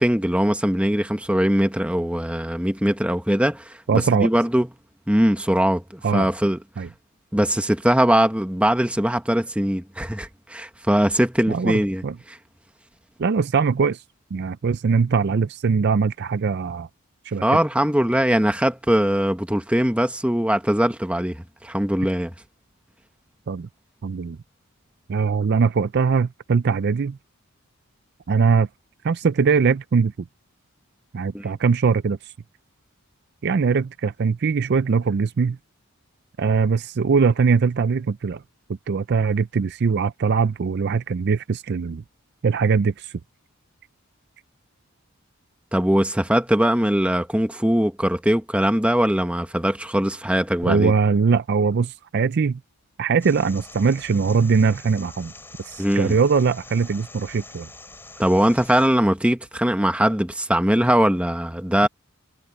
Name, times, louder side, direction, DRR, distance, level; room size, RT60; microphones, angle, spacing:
voice 1, 0.0-4.7 5.1-6.6 7.3-12.0 12.3-12.4 17.4-22.3 31.3-31.5 45.7-50.9 55.8-56.1 58.2-61.9, equal, 5° right, 1.3 m, -21 dB
voice 2, 3.9-4.3 6.0-6.3 6.8-6.9 11.5-12.2 13.2-14.0 14.3-16.9 17.2-17.4 23.5-23.7 24.0-24.4 25.1-27.2 28.3-28.7 29.0-30.1 31.1-32.3 33.4-35.6 36.4-38.4 38.9-42.0 42.4-43.1 50.7-52.6 53.0-55.3 55.6-57.7 61.8-61.9, right 5 dB, 50° right, 0.4 m, -21 dB
sound 1, 53.2-58.9, left 2 dB, 10° left, 3.9 m, -44 dB
head